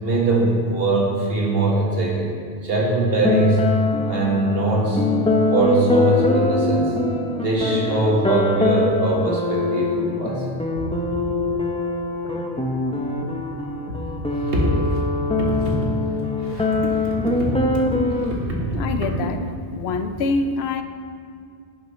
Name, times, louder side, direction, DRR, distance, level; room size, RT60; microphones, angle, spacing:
voice 1, 0.0-2.4 2.6-3.7 4.1-5.0 5.5-6.9 7.4-10.4 14.3-14.7 15.4-15.9 16.4-18.7, right 2 dB, 70° right, -2 dB, 1.7 m, -22 dB
sound 1, 3.2-18.3, left 2 dB, 5° left, 0.5 m, -23 dB
voice 2, 18.7-19.4 19.7-20.8, left 3 dB, 85° left, 8 dB, 0.9 m, -24 dB
11.0 x 7.6 x 3.1 m, 2.4 s
omnidirectional pair, 1.0 m